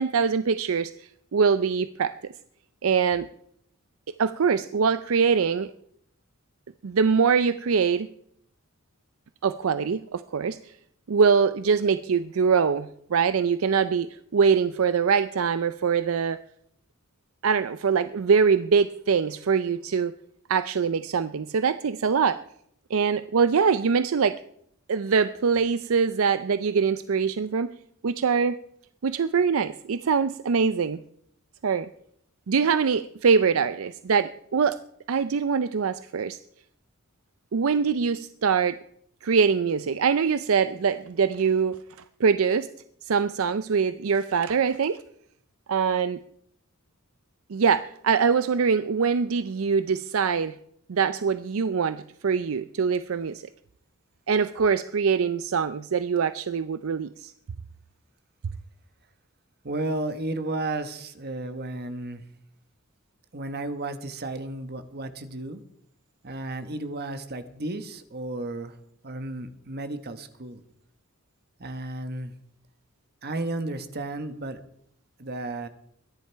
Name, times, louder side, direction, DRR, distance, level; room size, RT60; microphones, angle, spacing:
voice 1, 0.0-2.1 2.8-3.3 4.2-5.7 6.8-8.1 9.4-10.7 11.1-16.4 17.4-20.1 20.5-22.4 22.9-24.4 24.9-27.7 28.0-28.6 29.0-31.0 31.6-31.9 32.5-34.8 35.1-36.4 37.5-38.8 39.2-41.8 42.2-42.7 43.0-45.0 45.7-46.2 47.5-50.6 50.9-53.4 54.3-57.3, right 6 dB, 70° right, 13 dB, 0.5 m, -23 dB
voice 2, 59.6-62.2 63.3-65.6 66.2-68.8 69.0-70.6 71.6-72.4 73.2-74.6 75.2-75.7, right 2 dB, 45° right, 9 dB, 1.3 m, -33 dB
22.5 x 10.5 x 4.6 m, 0.71 s
head